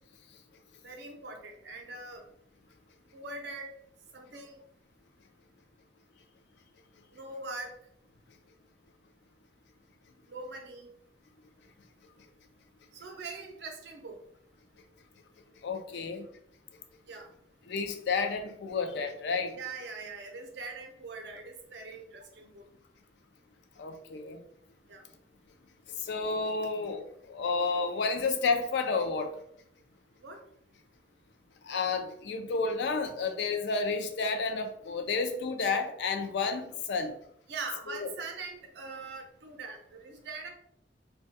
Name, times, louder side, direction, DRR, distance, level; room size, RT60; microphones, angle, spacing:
voice 1, 0.8-2.3 3.1-3.7 4.1-4.6 7.1-7.7 10.3-10.9 12.9-14.2 17.1-17.3 19.5-22.6 24.9-25.1 30.2-30.4 37.5-40.5, right 3 dB, 70° right, 3 dB, 0.5 m, -42 dB
voice 2, 15.6-16.3 17.7-19.5 23.8-24.4 26.0-29.3 31.6-37.1 37.9-38.1, left 4 dB, 70° left, 6 dB, 0.4 m, -31 dB
2.2 x 2.2 x 2.7 m, 0.69 s
head